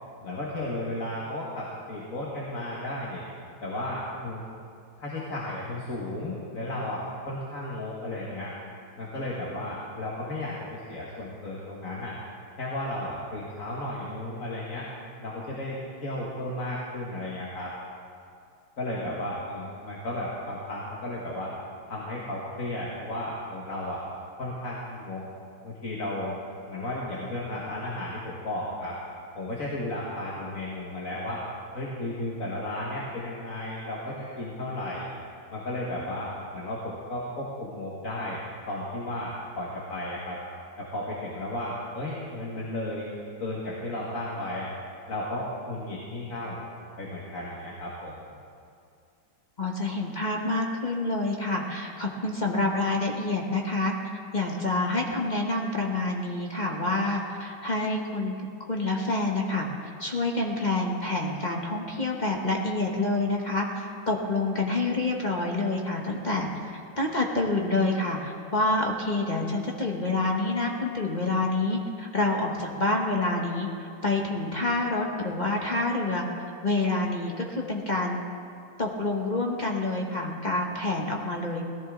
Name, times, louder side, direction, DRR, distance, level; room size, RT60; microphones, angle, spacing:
voice 1, 0.2-3.2 3.6-4.4 5.0-8.5 9.0-12.2 12.6-14.9 15.2-17.7 18.8-21.5 21.9-24.0 24.4-25.3 25.6-26.4 26.7-29.0 29.3-31.4 31.7-35.1 35.5-40.4 40.8-43.1 43.4-44.7 45.1-46.6 47.0-48.2, left 1 dB, 45° left, -5 dB, 1.9 m, -34 dB
voice 2, 49.6-53.9 54.3-58.4 58.6-59.7 60.0-76.3 76.6-78.2 78.8-81.6, left 2 dB, 25° left, 0 dB, 1.1 m, -27 dB
18.0 x 14.0 x 3.8 m, 2.3 s
omnidirectional pair, 2.2 m